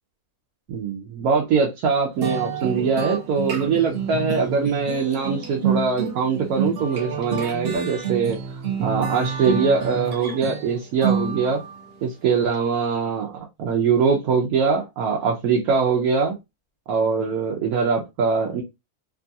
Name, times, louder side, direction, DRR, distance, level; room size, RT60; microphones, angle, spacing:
voice 1, 0.7-8.4 8.8-11.6 12.0-16.4 16.9-18.6, right 5 dB, 80° right, 0 dB, 1.1 m, -22 dB
sound 1, 2.2-11.9, right 6 dB, 60° right, 0.7 m, -28 dB
3.0 x 2.3 x 2.6 m, 0.22 s
omnidirectional pair, 1.6 m